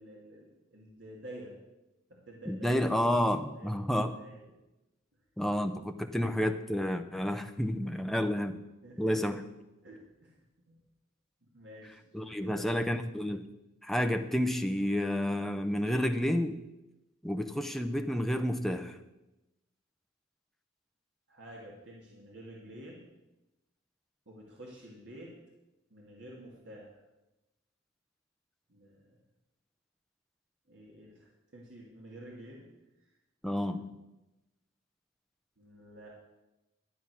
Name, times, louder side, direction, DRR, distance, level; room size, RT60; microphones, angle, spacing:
voice 1, 0.0-1.5 2.1-2.8 3.5-4.6 8.8-9.2 9.8-10.8 11.4-12.8 21.3-23.1 24.3-25.3 25.9-27.0 28.7-29.2 30.7-32.7 35.6-36.1, right 1 dB, 60° right, -3 dB, 2.4 m, -50 dB
voice 2, 2.5-4.2 5.4-8.6 9.0-9.5 12.1-13.5 13.8-16.5 17.2-18.9 33.4-33.9, equal, ahead, 6 dB, 0.7 m, -30 dB
12.5 x 8.8 x 6.2 m, 0.98 s
head